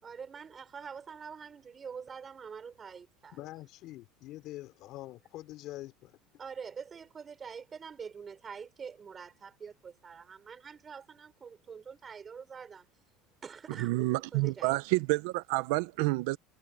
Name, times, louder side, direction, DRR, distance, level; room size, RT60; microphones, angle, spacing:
voice 1, 0.0-3.4 6.4-12.9 13.4-14.8, right 6 dB, 15° right, 6.1 m, -45 dB
voice 2, 3.3-6.2, left 16 dB, 40° left, 3.9 m, -45 dB
voice 3, 13.8-16.4, right 21 dB, 60° right, 0.6 m, -29 dB
cardioid pair, 175°, 0 cm